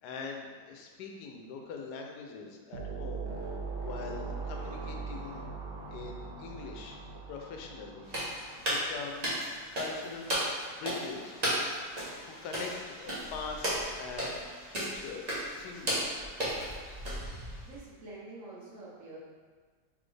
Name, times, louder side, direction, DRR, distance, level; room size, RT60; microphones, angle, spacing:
voice 1, 0.0-5.5 5.8-7.0 7.3-8.1 8.5-9.3 9.7-10.4 10.7-11.4 12.2-16.2, left 4 dB, 80° left, 2 dB, 1.1 m, -43 dB
sound 1, 2.7-9.2, right 4 dB, 80° right, 0.5 m, -40 dB
sound 2, 8.1-17.8, equal, 30° right, 1.0 m, -35 dB
voice 2, 17.6-19.2, right 2 dB, 60° right, -5 dB, 1.1 m, -47 dB
4.1 x 3.3 x 3.2 m, 1.5 s
omnidirectional pair, 1.8 m